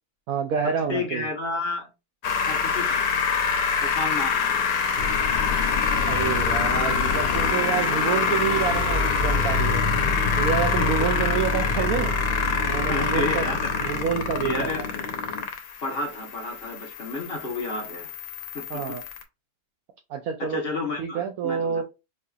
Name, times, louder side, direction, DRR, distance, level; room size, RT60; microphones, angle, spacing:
voice 1, 0.3-1.3 6.1-9.8 10.4-12.1 12.7-13.5 13.8-14.7 18.7-19.0 20.1-20.6 21.0-21.8, right 7 dB, 70° right, 1.0 m, -28 dB
voice 2, 0.9-1.9 2.5-3.1 3.8-4.6 10.8-10.9 11.6-11.9 12.9-13.6 14.4-14.8 15.8-18.1 18.5-18.8 20.4-21.8, left 3 dB, 45° left, 1.1 m, -31 dB
sound 1, 2.2-19.2, left 5 dB, 85° left, 1.3 m, -25 dB
sound 2, 5.0-15.4, left 5 dB, 65° left, 0.6 m, -31 dB
5.5 x 2.8 x 2.3 m
omnidirectional pair, 1.6 m